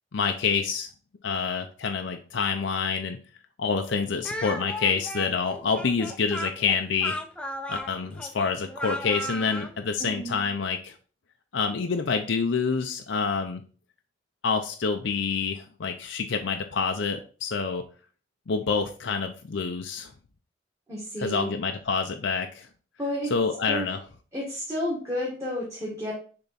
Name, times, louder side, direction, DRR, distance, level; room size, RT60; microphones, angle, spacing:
voice 1, 0.1-0.9 1.2-3.2 3.6-7.2 7.7-10.9 11.5-13.6 14.4-17.8 18.5-20.1 21.2-22.7 23.3-24.0, left 5 dB, 75° left, 5 dB, 0.6 m, -27 dB
Speech, 4.2-9.7, equal, 5° left, 0.6 m, -35 dB
voice 2, 10.0-10.5 20.9-21.5 23.0-23.3 23.7-23.9 24.3-26.1, equal, 15° right, -6 dB, 1.8 m, -31 dB
6.7 x 3.5 x 4.2 m, 0.40 s
head